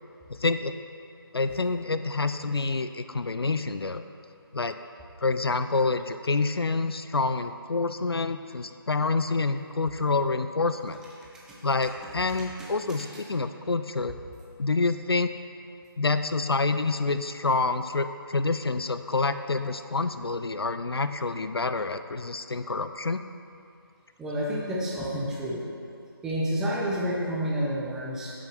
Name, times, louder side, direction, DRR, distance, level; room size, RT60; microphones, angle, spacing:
voice 1, 0.3-0.7 1.3-4.0 4.5-4.8 5.2-11.0 11.6-14.2 14.6-15.3 16.0-23.2, left 3 dB, 80° left, 10 dB, 0.5 m, -27 dB
voice 2, 24.2-25.6 26.2-28.3, equal, 5° right, -6 dB, 0.7 m, -29 dB
8.3 x 6.2 x 6.0 m, 2.6 s
figure-of-eight pair, 155°, 13 cm